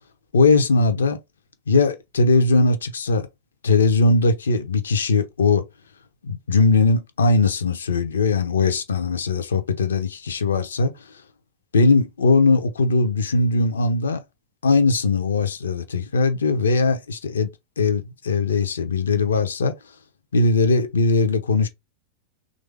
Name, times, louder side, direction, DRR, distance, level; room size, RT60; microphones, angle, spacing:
voice 1, 0.3-1.2 1.7-3.3 3.6-5.6 6.2-10.9 11.7-14.2 14.6-17.5 17.8-19.8 20.3-21.7, left 3 dB, 70° left, 0.6 m, -20 dB
3.2 x 2.6 x 3.3 m
figure-of-eight pair, 90°, 0 cm